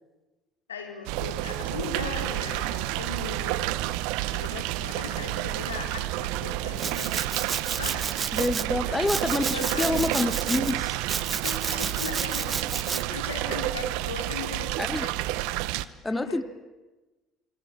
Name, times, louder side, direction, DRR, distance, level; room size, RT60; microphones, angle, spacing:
voice 1, 0.7-3.7 4.3-7.2 7.8-8.1 8.9-9.0 9.5-10.0 11.4-15.2 16.1-16.4, left 4 dB, 85° left, 4.1 m, -38 dB
sound 1, 1.1-15.9, right 17 dB, 70° right, 0.9 m, -30 dB
Domestic sounds home sounds, 6.8-8.7 9.1-10.7 11.1-13.0, right 5 dB, 30° right, 0.9 m, -31 dB
voice 2, 8.3-11.0 14.8-15.1 16.0-16.4, left 2 dB, 15° left, 1.1 m, -27 dB
26.0 x 24.5 x 8.8 m
hypercardioid pair, 60°, 0 cm